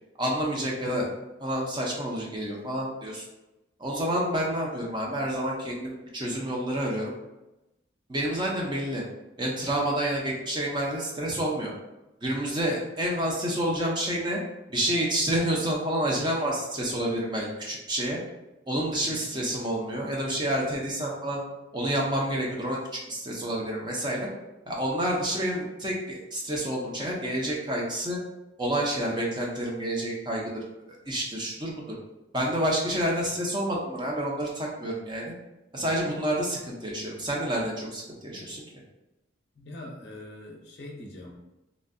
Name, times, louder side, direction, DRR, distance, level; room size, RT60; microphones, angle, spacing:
voice 1, 0.2-1.1 1.4-3.2 3.8-7.1 8.1-9.0 9.4-11.7 12.2-14.4 14.7-18.2 18.7-21.4 21.7-22.8 23.1-24.3 24.7-28.2 28.6-30.5 31.1-31.8 32.3-35.3 35.7-38.6, right 1 dB, 20° right, -3 dB, 0.5 m, -29 dB
voice 2, 19.0-19.3 39.5-41.3, left 1 dB, 55° left, 0 dB, 0.6 m, -43 dB
3.1 x 2.6 x 2.5 m, 0.97 s
head